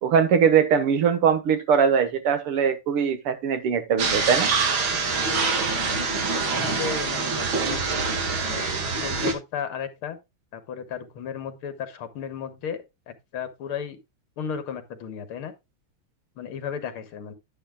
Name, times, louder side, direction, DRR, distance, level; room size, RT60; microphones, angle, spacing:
voice 1, 0.0-4.5, right 7 dB, 85° right, 2.2 m, -21 dB
voice 2, 3.9-4.3 5.7-8.0 8.4-10.2 10.5-14.0 14.4-15.5 16.4-17.3, left 7 dB, 80° left, 2.2 m, -35 dB
sound 1, 4.0-9.3, right 4 dB, 65° right, 2.6 m, -25 dB
10.0 x 9.7 x 2.2 m
omnidirectional pair, 2.4 m